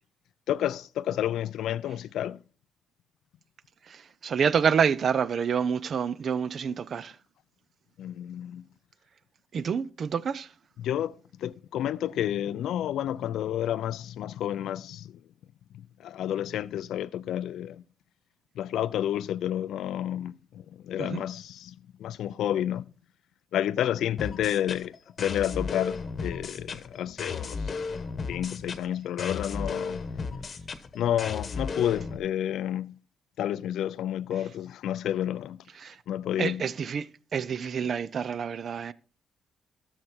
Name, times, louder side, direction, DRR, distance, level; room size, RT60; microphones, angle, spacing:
voice 1, 0.5-2.4 8.0-8.6 10.8-15.2 15.7-17.8 18.6-21.7 22.0-22.9 23.5-27.6 28.3-30.0 30.9-32.9 33.4-35.6 36.1-36.6, left 11 dB, 80° left, 0.4 m, -30 dB
voice 2, 3.9-7.1 9.5-10.5 21.0-21.2 35.8-35.9 36.4-37.1 37.3-38.9, right 7 dB, 55° right, 0.6 m, -27 dB
sound 1, 24.2-32.2, left 4 dB, 45° left, 1.1 m, -35 dB
13.0 x 6.5 x 4.5 m
cardioid pair, 90°, 0 cm